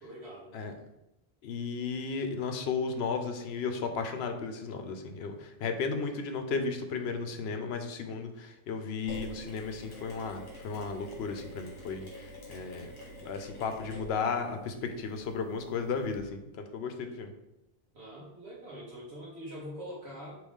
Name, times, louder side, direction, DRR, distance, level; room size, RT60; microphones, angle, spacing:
voice 1, 0.0-0.5 17.9-20.4, equal, 85° right, -5 dB, 1.1 m, -44 dB
voice 2, 1.4-12.9 13.2-16.4 16.7-17.3, left 5 dB, 80° left, 6 dB, 0.9 m, -34 dB
Mechanisms, 9.1-16.2, equal, 55° left, 1.5 m, -47 dB
4.7 x 3.0 x 3.5 m, 0.93 s
omnidirectional pair, 1.1 m